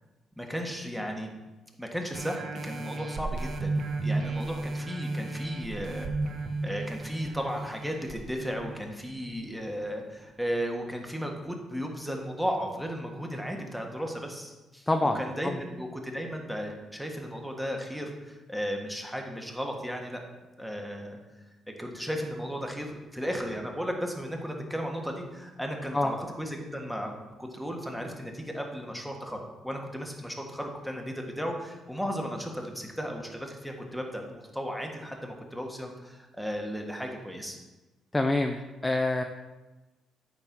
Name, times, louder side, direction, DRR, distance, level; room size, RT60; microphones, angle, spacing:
voice 1, 0.4-1.3 1.8-6.1 6.6-20.2 20.6-21.2 21.8-27.1 27.4-37.6, equal, ahead, 2 dB, 1.4 m, -35 dB
sound 1, 2.1-9.3 9.9-10.0, right 2 dB, 55° right, 1.1 m, -34 dB
voice 2, 14.9-15.5 25.9-26.1 38.1-38.6 38.8-39.2, left 2 dB, 15° left, 5 dB, 0.5 m, -26 dB
8.7 x 4.0 x 6.0 m, 1.1 s
cardioid pair, 90°, 0 cm